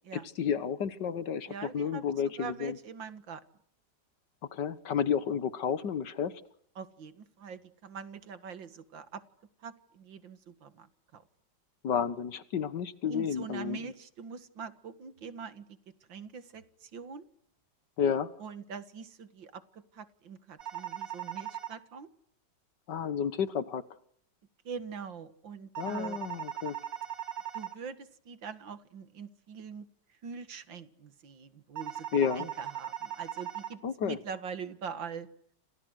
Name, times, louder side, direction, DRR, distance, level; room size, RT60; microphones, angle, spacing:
voice 1, 0.1-2.8 4.5-6.3 11.8-13.8 18.0-18.3 22.9-23.8 25.8-26.8 32.1-32.5 33.8-34.2, left 7 dB, 65° left, 15 dB, 1.9 m, -31 dB
voice 2, 1.5-2.1 2.4-3.4 6.8-9.2 9.6-11.2 13.1-15.7 16.1-17.3 18.4-22.1 24.6-26.2 27.5-29.9 30.2-32.1 32.4-35.3, right 6 dB, 80° right, 12 dB, 2.4 m, -43 dB
sound 1, 20.6-21.7 25.7-27.7 31.8-33.7, right 10 dB, 45° right, 2.3 m, -39 dB
29.5 x 27.0 x 6.5 m, 0.67 s
omnidirectional pair, 2.0 m